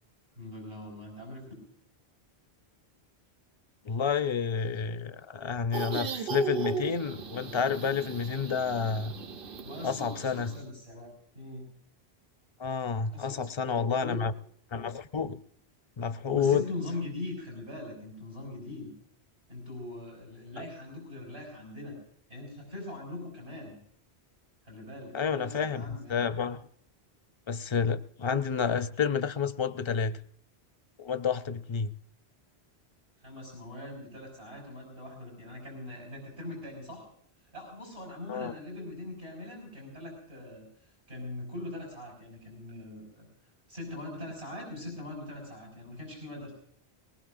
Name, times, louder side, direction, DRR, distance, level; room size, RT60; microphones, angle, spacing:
voice 1, 0.3-1.5 9.6-11.1 11.3-11.7 13.1-14.2 16.3-18.9 19.5-22.0 22.3-23.8 24.6-26.2 33.2-37.1 37.4-43.3 43.7-46.5, left 2 dB, 90° right, 0 dB, 5.3 m, -41 dB
voice 2, 3.9-9.1 9.8-10.5 12.6-14.3 14.7-15.4 16.0-16.6 25.1-26.6 27.5-30.2 31.0-31.9 38.3-38.5, left 6 dB, 35° left, 11 dB, 0.5 m, -30 dB
sound 1, 5.7-10.7, right 5 dB, 60° right, 0.9 m, -37 dB
21.0 x 19.5 x 2.6 m, 0.66 s
omnidirectional pair, 1.1 m